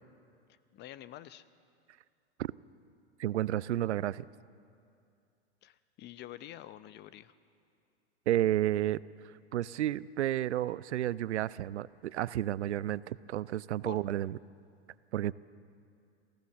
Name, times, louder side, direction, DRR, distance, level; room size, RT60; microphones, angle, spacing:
voice 1, 0.7-1.4 5.6-7.3 13.8-14.0, left 13 dB, 30° left, 15 dB, 0.7 m, -47 dB
voice 2, 3.2-4.2 8.3-9.0 9.5-14.4 15.1-15.3, right 13 dB, 85° right, 20 dB, 0.6 m, -31 dB
23.5 x 16.0 x 7.3 m, 2.4 s
hypercardioid pair, 110°, 33 cm